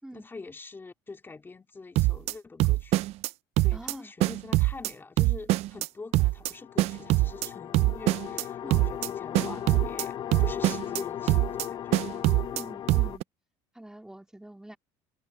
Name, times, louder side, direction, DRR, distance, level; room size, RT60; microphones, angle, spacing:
voice 1, 0.0-3.1 3.6-12.0, left 3 dB, 20° left, 3.0 m, -45 dB
sound 1, 2.0-2.3 2.6-3.3 3.6-3.9 4.2-4.9 5.2-5.9 6.1-6.5 6.8-7.5 7.7-8.4 8.7-9.1 9.3-10.0 10.3-11.0 11.3-11.7 11.9-12.6 12.9-13.2, right 18 dB, 65° right, 0.5 m, -23 dB
voice 2, 3.7-4.1 8.6-8.8 12.5-13.3 13.7-14.8, right 1 dB, 5° right, 3.0 m, -45 dB
sound 2, 6.3-13.2, left 10 dB, 40° left, 0.6 m, -37 dB
cardioid pair, 115°, 12 cm